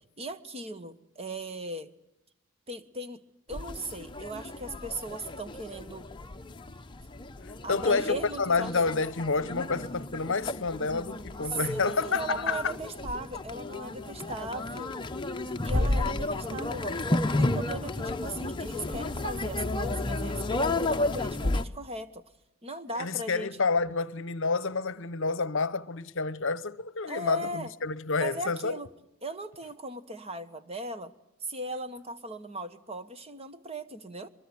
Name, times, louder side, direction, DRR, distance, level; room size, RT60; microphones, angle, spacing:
voice 1, 0.2-1.9 2.7-3.2 3.5-6.1 7.6-8.7 11.5-15.0 15.6-22.2 22.6-23.5 27.1-27.7 28.2-28.9 29.2-31.1 31.4-34.3, right 1 dB, 25° right, 1.3 m, -38 dB
sound 1, 3.5-21.6, left 2 dB, 20° left, 0.9 m, -32 dB
voice 2, 7.4-12.7 22.9-28.8, left 4 dB, 55° left, 0.9 m, -29 dB
23.0 x 22.5 x 8.0 m
head